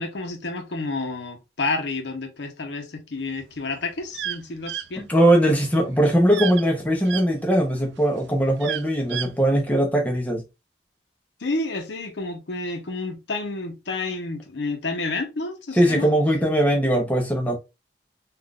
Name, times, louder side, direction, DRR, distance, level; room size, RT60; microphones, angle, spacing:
voice 1, 0.0-5.1 11.4-16.1, left 3 dB, 85° left, 0.7 m, -30 dB
sound 1, 3.4-7.3 7.8-9.4, right 10 dB, 80° right, 0.3 m, -32 dB
voice 2, 5.0-10.4 15.8-17.6, right 1 dB, 10° left, 0.7 m, -20 dB
3.6 x 2.4 x 2.3 m
head